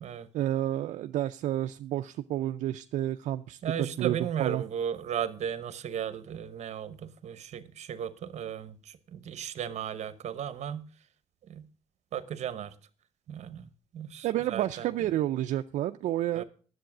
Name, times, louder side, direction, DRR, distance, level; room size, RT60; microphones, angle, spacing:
voice 1, 0.3-4.6 14.2-16.4, right 13 dB, 85° right, 0.4 m, -30 dB
voice 2, 3.6-10.9 11.5-11.7 12.1-12.7 13.3-13.7 13.9-14.9 16.3-16.4, right 9 dB, 65° right, 0.9 m, -35 dB
10.5 x 7.8 x 5.9 m
cardioid pair, 105°, 12 cm